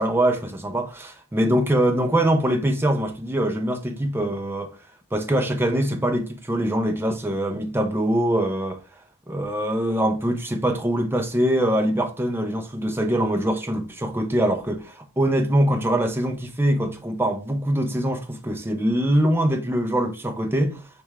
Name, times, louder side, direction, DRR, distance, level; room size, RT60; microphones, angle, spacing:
voice 1, 0.0-4.7 5.1-8.8 9.3-20.8, right 1 dB, 10° right, 0.6 m, -23 dB
4.8 x 3.4 x 3.2 m
head